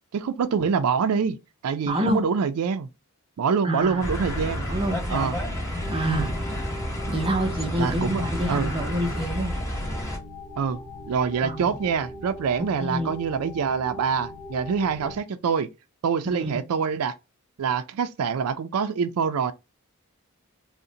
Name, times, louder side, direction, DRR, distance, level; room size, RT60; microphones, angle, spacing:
voice 1, 0.1-1.4 1.6-2.9 3.4-4.7 5.1-5.4 6.1-6.3 7.8-8.7 10.6-10.8 11.1-15.7 16.0-17.1 17.6-19.5, right 6 dB, 80° right, 0.4 m, -25 dB
voice 2, 1.8-2.2 3.6-4.1 4.7-5.0 5.9-6.3 7.1-9.5 11.4-11.8 12.8-13.1 16.3-16.6, right 1 dB, 25° right, 0.5 m, -27 dB
sound 1, 3.8-9.3, left 2 dB, 85° left, 0.7 m, -41 dB
sound 2, 4.0-10.2, equal, 15° left, 0.7 m, -30 dB
sound 3, 5.8-15.2, left 1 dB, 50° left, 0.6 m, -41 dB
3.7 x 2.1 x 2.7 m
head